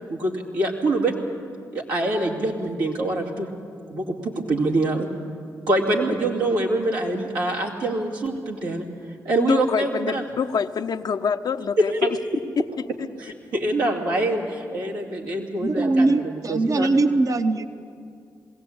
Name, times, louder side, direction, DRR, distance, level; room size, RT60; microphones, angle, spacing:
voice 1, 0.1-1.2 1.7-3.5 3.9-5.1 5.7-8.8 9.2-10.2 11.8-12.1 13.2-16.9, right 2 dB, 90° right, -2 dB, 2.7 m, -25 dB
voice 2, 9.4-11.9, left 6 dB, 65° left, 8 dB, 0.7 m, -25 dB
voice 3, 15.6-17.7, right 2 dB, 50° right, 8 dB, 0.9 m, -21 dB
21.0 x 17.0 x 8.7 m, 2.3 s
supercardioid pair, 45°, 7 cm